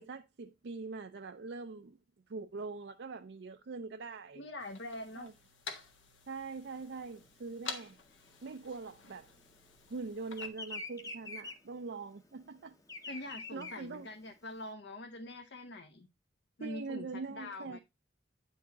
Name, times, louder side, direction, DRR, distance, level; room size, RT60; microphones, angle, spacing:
voice 1, 0.0-2.0 2.3-4.4 5.2-5.3 6.3-8.0 8.4-9.3 9.9-12.8 13.2-14.1 16.6-17.8, right 4 dB, 60° right, 0.5 m, -43 dB
voice 2, 4.4-5.3 13.1-16.1 16.6-17.8, left 2 dB, 65° left, 0.8 m, -44 dB
sound 1, 4.6-10.5, left 5 dB, 80° left, 1.5 m, -49 dB
Bird vocalization bird call bird song, 6.7-9.6 9.9-14.6, left 3 dB, 20° left, 0.8 m, -45 dB
9.4 x 4.6 x 4.0 m
head